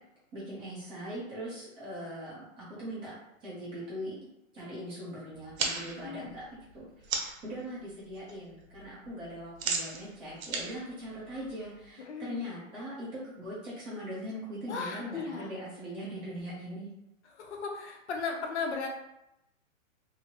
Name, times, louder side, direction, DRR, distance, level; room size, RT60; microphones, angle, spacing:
voice 1, 0.3-3.1 3.4-4.2 4.5-6.5 6.7-16.9, equal, 15° right, -8 dB, 0.7 m, -41 dB
sound 1, 5.4-7.5 7.9-8.3 8.6-11.9, right 4 dB, 80° right, 0.8 m, -36 dB
voice 2, 6.0-6.4 12.0-12.4 14.7-15.5 17.3-18.9, left 5 dB, 55° left, 3 dB, 0.6 m, -36 dB
2.7 x 2.7 x 2.8 m, 0.84 s
hypercardioid pair, 155°, 40 cm